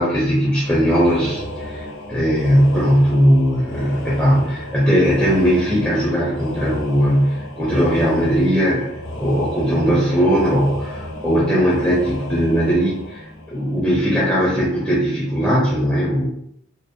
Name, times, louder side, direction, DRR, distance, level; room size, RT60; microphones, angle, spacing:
voice 1, 0.0-8.9 9.2-16.3, equal, 5° left, -8 dB, 0.4 m, -18 dB
sound 1, 0.6-14.1, left 1 dB, 70° left, 0.5 m, -33 dB
2.5 x 2.0 x 2.6 m, 0.75 s
head